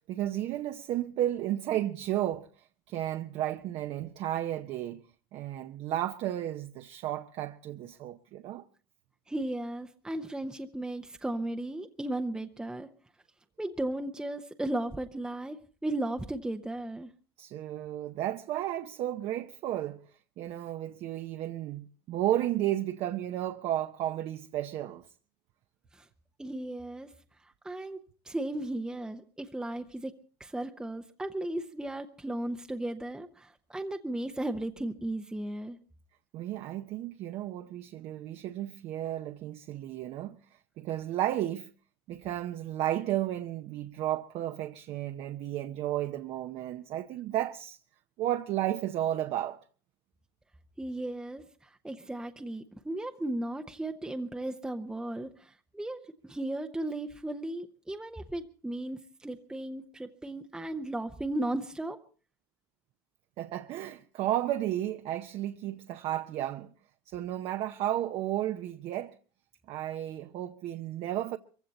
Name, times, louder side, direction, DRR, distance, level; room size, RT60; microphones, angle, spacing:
voice 1, 0.1-5.0 5.3-8.6 17.4-25.1 36.3-41.7 42.1-47.8 48.2-49.6 63.4-66.7 67.1-69.2 69.7-71.4, right 13 dB, 50° right, 0.8 m, -33 dB
voice 2, 9.3-12.9 13.6-17.1 25.9-26.1 26.4-27.1 27.4-28.0 28.2-30.1 30.4-35.8 50.8-62.0, right 1 dB, 5° right, 0.7 m, -35 dB
22.5 x 15.5 x 4.1 m
cardioid pair, 135°, 13 cm